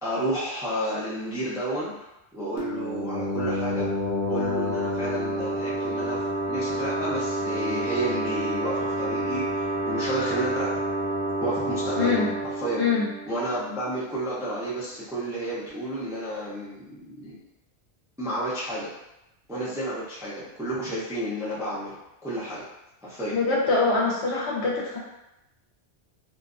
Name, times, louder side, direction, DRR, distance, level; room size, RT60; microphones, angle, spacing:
voice 1, 0.0-1.9 2.3-3.9 4.3-6.2 6.5-10.7 11.4-12.2 12.6-12.8 13.3-17.4 18.2-18.9 19.5-21.9 22.2-22.6 23.0-23.3, right 1 dB, 5° right, -8 dB, 0.3 m, -31 dB
sound 1, 2.6-14.0, right 1 dB, 55° right, 0.9 m, -29 dB
voice 2, 12.0-12.3 12.8-13.1 23.3-25.0, left 4 dB, 70° left, -4 dB, 0.9 m, -24 dB
2.5 x 2.2 x 2.5 m, 0.91 s
omnidirectional pair, 1.2 m